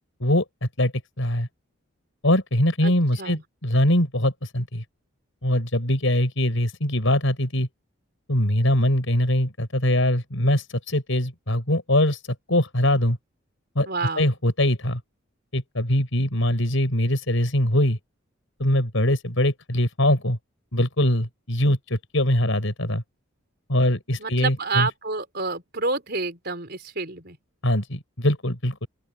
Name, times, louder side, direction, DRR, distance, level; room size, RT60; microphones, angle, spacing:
voice 1, 1.2-1.5 2.2-4.8 5.4-7.7 8.3-12.2 12.5-13.2 13.8-13.9 14.2-15.0 15.5-18.0 18.6-20.4 20.7-23.0 23.7-24.9 27.6-28.9, left 1 dB, 70° left, 5.3 m, -22 dB
voice 2, 2.8-3.4 13.8-14.3 24.2-27.4, right 3 dB, 50° right, 4.7 m, -29 dB
open air
head